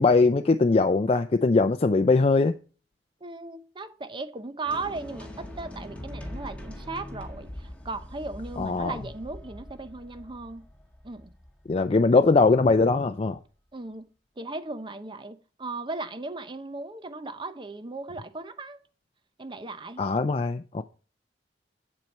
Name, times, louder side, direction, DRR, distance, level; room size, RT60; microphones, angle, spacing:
voice 1, 0.0-2.5 8.6-8.9 11.7-13.4 20.0-20.8, left 3 dB, 35° left, 0.4 m, -21 dB
voice 2, 3.2-10.7 11.0-11.3 13.7-14.1 14.4-18.8 19.4-20.0, right 3 dB, 30° right, 0.8 m, -37 dB
sound 1, 4.6-12.7, left 1 dB, 5° left, 1.7 m, -42 dB
8.0 x 7.5 x 5.3 m
head